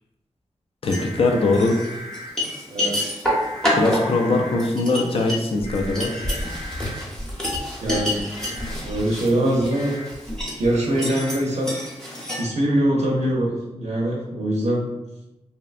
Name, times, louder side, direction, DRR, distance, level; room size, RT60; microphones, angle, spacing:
voice 1, 0.8-1.8 3.8-6.1, left 3 dB, 50° left, 2 dB, 0.3 m, -21 dB
sound 1, 0.8-1.1 1.5-12.4, left 1 dB, 5° left, 0.7 m, -28 dB
sound 2, 0.9-2.3 3.3-4.7 5.6-7.0 8.4-8.7 9.7-10.1 11.0-11.4, left 1 dB, 80° left, 1.0 m, -38 dB
voice 2, 2.7-3.2 7.8-8.2 8.8-10.0 10.6-11.8 12.4-14.9, right 1 dB, 70° right, -3 dB, 0.5 m, -23 dB
2.6 x 2.1 x 2.4 m, 0.98 s
wide cardioid pair, 90°, 12 cm